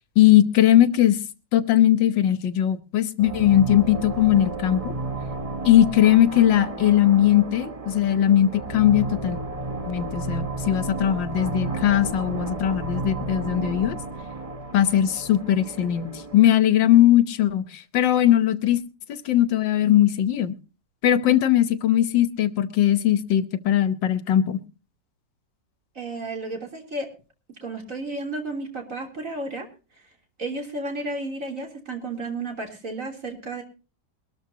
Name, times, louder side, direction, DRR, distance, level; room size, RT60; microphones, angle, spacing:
voice 1, 0.2-1.2 1.5-4.9 5.6-9.4 9.9-14.0 14.7-18.8 19.1-20.5 21.0-24.6, left 11 dB, 85° left, 12 dB, 1.7 m, -19 dB
sound 1, 3.2-16.5, right 2 dB, 25° right, 1.0 m, -32 dB
voice 2, 26.0-27.1 27.6-29.7 30.4-33.6, right 2 dB, 45° right, 3 dB, 3.7 m, -32 dB
22.5 x 13.5 x 2.8 m, 0.33 s
omnidirectional pair, 2.0 m